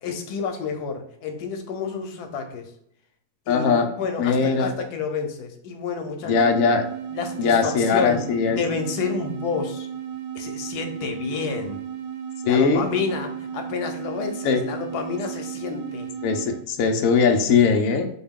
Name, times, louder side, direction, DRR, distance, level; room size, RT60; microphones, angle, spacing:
voice 1, 0.0-2.7 3.5-6.5 7.1-8.2 8.5-9.9 10.3-11.8 12.4-16.1, left 5 dB, 90° left, 5 dB, 1.2 m, -29 dB
voice 2, 3.5-3.9 4.2-4.7 6.2-6.9 7.4-8.6 12.5-12.9 14.4-14.6 16.2-18.1, left 5 dB, 70° left, 6 dB, 0.9 m, -20 dB
sound 1, 6.3-16.7, right 9 dB, 90° right, 1.2 m, -34 dB
4.3 x 2.3 x 3.5 m, 0.71 s
omnidirectional pair, 1.7 m